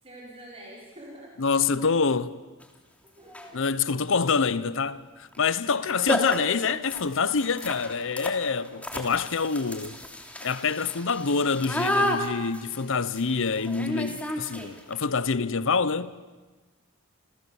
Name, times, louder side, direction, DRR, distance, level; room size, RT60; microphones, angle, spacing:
voice 1, 0.0-1.5 3.0-3.9 5.8-6.5, right 1 dB, 30° right, 5.0 m, -47 dB
voice 2, 1.4-2.4 3.5-10.0 10.4-16.1, left 5 dB, 60° left, 0.8 m, -26 dB
sound 1, 2.6-2.7 3.3-3.6 5.3-5.5 5.7-5.8 6.1-14.9, left 1 dB, 5° left, 3.1 m, -32 dB
29.0 x 28.0 x 7.2 m
head